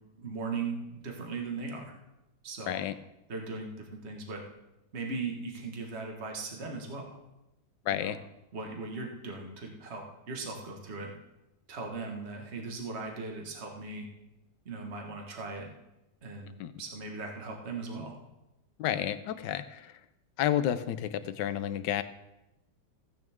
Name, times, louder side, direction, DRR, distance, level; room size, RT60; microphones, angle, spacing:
voice 1, 0.2-1.9 2.4-2.8 3.3-4.4 4.9-7.1 7.9-8.2 8.5-11.1 11.7-14.1 14.6-15.7 16.2-16.5 16.8-18.2, right 4 dB, 35° right, 1 dB, 1.7 m, -38 dB
voice 2, 7.9-8.2 16.6-16.7 18.8-19.9 20.4-22.0, left 11 dB, 70° left, 12 dB, 1.2 m, -31 dB
15.5 x 9.2 x 3.6 m, 0.93 s
omnidirectional pair, 2.1 m